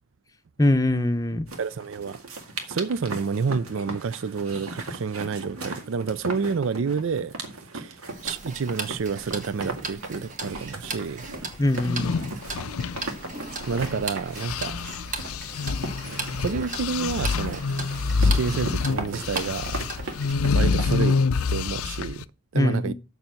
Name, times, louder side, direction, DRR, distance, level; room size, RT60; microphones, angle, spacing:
voice 1, 0.6-1.5 11.6-12.3 22.5-22.9, left 1 dB, 15° left, 0.7 m, -23 dB
sound 1, 1.5-20.8, right 2 dB, 90° right, 2.0 m, -38 dB
voice 2, 1.6-2.2 2.7-11.3 13.7-14.8 16.4-17.7 18.2-19.8 20.5-22.2 22.5-22.9, right 5 dB, 65° right, 0.4 m, -29 dB
Tick-tock, 8.1-20.3, right 3 dB, 35° right, 1.5 m, -38 dB
sound 2, 11.7-14.0 14.4-22.2, left 4 dB, 90° left, 0.5 m, -27 dB
7.1 x 6.8 x 7.6 m
head